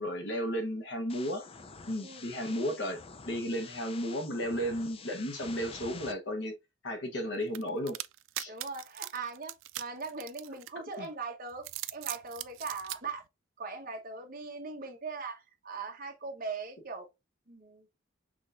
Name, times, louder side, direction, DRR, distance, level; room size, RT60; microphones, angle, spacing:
voice 1, 0.0-1.4 1.9-6.5 6.8-8.0 8.4-8.5 11.0-11.1, equal, 65° left, 1.1 m, -34 dB
sound 1, 1.1-6.1, left 5 dB, 30° left, 0.5 m, -48 dB
sound 2, 7.5-11.0 11.5-13.0, right 15 dB, 90° right, 0.4 m, -40 dB
voice 2, 8.5-13.2 13.6-17.1 17.5-17.9, right 4 dB, 45° right, 1.1 m, -40 dB
6.1 x 3.1 x 2.5 m
head